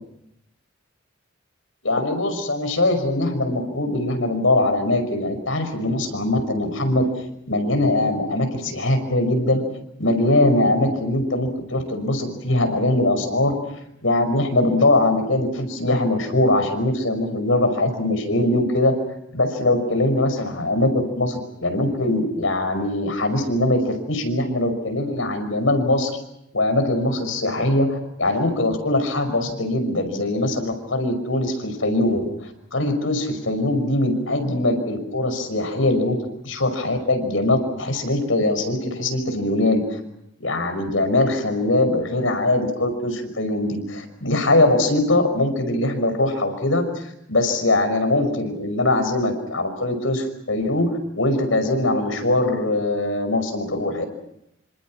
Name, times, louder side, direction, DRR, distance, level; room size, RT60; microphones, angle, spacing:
voice 1, 1.8-7.0 7.5-9.6 10.0-13.5 14.0-18.9 19.3-26.2 26.5-32.3 32.7-36.2 36.4-39.8 40.4-46.8 47.3-54.1, left 2 dB, 90° left, 7 dB, 5.6 m, -21 dB
27.0 x 26.5 x 6.2 m, 0.79 s
head